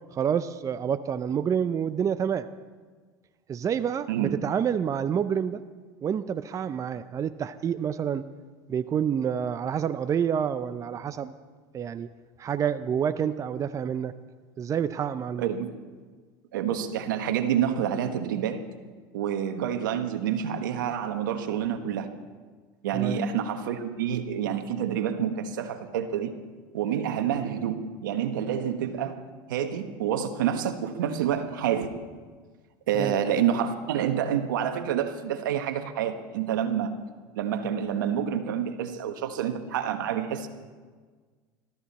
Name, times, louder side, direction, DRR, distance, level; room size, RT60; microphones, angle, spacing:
voice 1, 0.1-2.5 3.5-5.6 6.0-8.2 8.7-11.3 11.7-12.1 12.4-14.1 14.6-15.5 22.9-23.2 33.0-33.2, right 8 dB, 30° right, 12 dB, 0.6 m, -28 dB
voice 2, 15.4-15.7 16.5-18.6 19.1-22.1 22.8-26.3 26.7-29.1 29.5-31.9 32.9-36.9 37.3-40.5, right 9 dB, 85° right, 8 dB, 1.3 m, -28 dB
21.0 x 13.5 x 4.2 m, 1.5 s
supercardioid pair, 100°, 10 cm